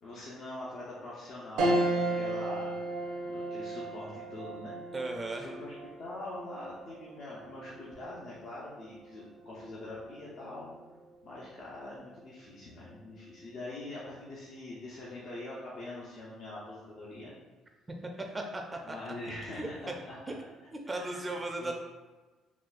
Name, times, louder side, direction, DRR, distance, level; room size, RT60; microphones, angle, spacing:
voice 1, 0.0-2.7 3.3-4.8 5.3-10.7 11.2-17.3 18.8-19.9 20.8-21.7, left 2 dB, 60° left, -7 dB, 0.6 m, -43 dB
sound 1, 1.6-11.2 11.7-11.8 13.1-13.5, right 2 dB, 75° right, 0.5 m, -36 dB
voice 2, 4.9-5.5 18.3-19.0 19.6-19.9 20.3-20.4 20.7-21.7, right 2 dB, 20° right, 2 dB, 0.4 m, -36 dB
3.8 x 2.3 x 2.4 m, 1.2 s
cardioid pair, 90°, 0 cm